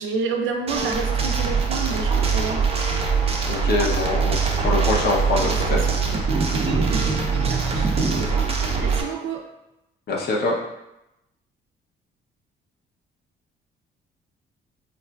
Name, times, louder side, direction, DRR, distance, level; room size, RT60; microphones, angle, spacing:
voice 1, 0.0-2.6 5.4-6.0 7.5-8.5 8.8-9.5, right 5 dB, 85° right, 3 dB, 0.5 m, -29 dB
sound 1, 0.7-9.0, right 5 dB, 30° right, 0.5 m, -22 dB
voice 2, 3.4-5.8 10.1-10.6, left 3 dB, 55° left, -1 dB, 0.6 m, -24 dB
3.9 x 2.4 x 2.2 m, 0.90 s
cardioid pair, 90°, 20 cm